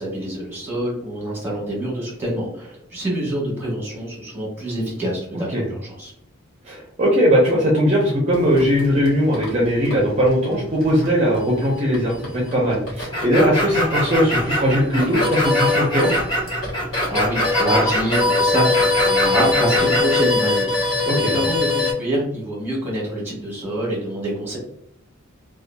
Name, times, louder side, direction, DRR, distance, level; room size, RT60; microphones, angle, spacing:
voice 1, 0.0-6.1 16.8-24.6, right 1 dB, 10° right, -4 dB, 1.0 m, -26 dB
voice 2, 5.3-5.6 6.6-16.1 21.1-21.3, equal, 35° right, -4 dB, 0.5 m, -19 dB
sound 1, 8.3-21.9, left 3 dB, 65° left, 1.1 m, -24 dB
sound 2, 13.1-20.2, equal, 20° left, 1.0 m, -24 dB
2.7 x 2.3 x 2.2 m, 0.71 s
head